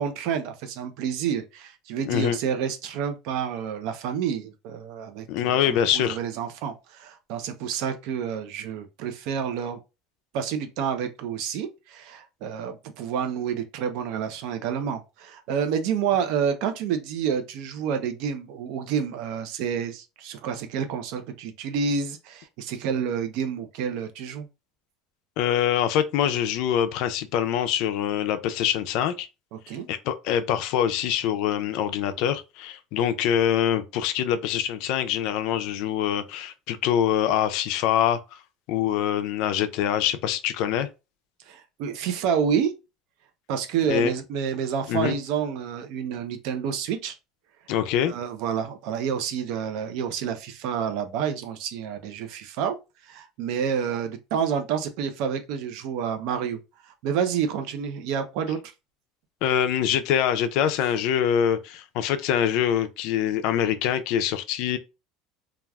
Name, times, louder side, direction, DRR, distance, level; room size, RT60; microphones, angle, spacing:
voice 1, 0.0-9.8 10.3-24.5 29.5-29.9 41.5-42.7 43.5-47.2 48.1-52.8 53.0-58.6, right 7 dB, 65° right, 0.5 m, -29 dB
voice 2, 2.1-2.4 5.3-6.2 25.4-29.3 29.7-38.4 38.7-40.9 43.9-44.1 44.9-45.2 47.7-48.1 59.4-64.8, left 10 dB, 65° left, 0.4 m, -24 dB
3.3 x 2.3 x 2.2 m
supercardioid pair, 130°, 0 cm